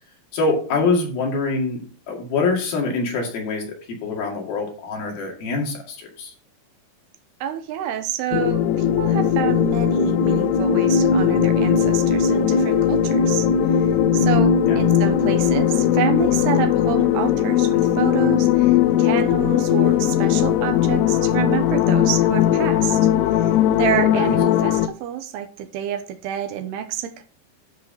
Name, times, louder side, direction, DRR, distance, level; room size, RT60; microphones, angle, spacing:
voice 1, 0.3-3.6 4.0-6.3 14.7-14.8 24.1-24.4, left 3 dB, 60° left, -1 dB, 3.8 m, -24 dB
voice 2, 7.4-27.2, right 10 dB, 75° right, 6 dB, 2.6 m, -28 dB
sound 1, 8.3-24.9, left 9 dB, 85° left, 2.3 m, -18 dB
12.5 x 4.8 x 4.4 m, 0.41 s
omnidirectional pair, 5.4 m